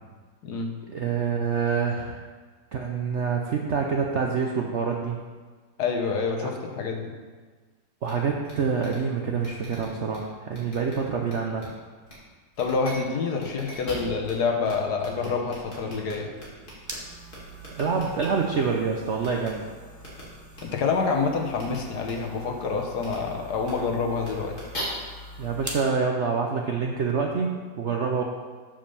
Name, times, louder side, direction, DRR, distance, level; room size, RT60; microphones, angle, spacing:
voice 1, 0.9-2.2 2.7-5.2 6.4-6.5 8.0-11.7 17.8-19.6 25.4-28.2, right 5 dB, 65° right, 1 dB, 0.7 m, -26 dB
voice 2, 5.8-7.1 12.6-16.3 20.6-24.5, left 4 dB, 65° left, 2 dB, 1.5 m, -27 dB
sound 1, 8.0-8.1 8.4-8.5 8.8-9.0 9.4-10.2 10.5-10.9 11.3-11.6 12.1-12.2 12.5-12.9 13.4-14.3 14.6-14.7 15.0-16.9 17.3-18.3 19.2-19.5 20.0-20.2 20.5-20.6 21.5-21.8 22.0-22.1 23.0-23.2 23.6-23.7 24.2-24.8, equal, 30° left, 2.5 m, -41 dB
sound 2, 16.3-25.9, equal, 10° right, 0.9 m, -44 dB
7.3 x 5.3 x 6.8 m, 1.5 s
omnidirectional pair, 2.0 m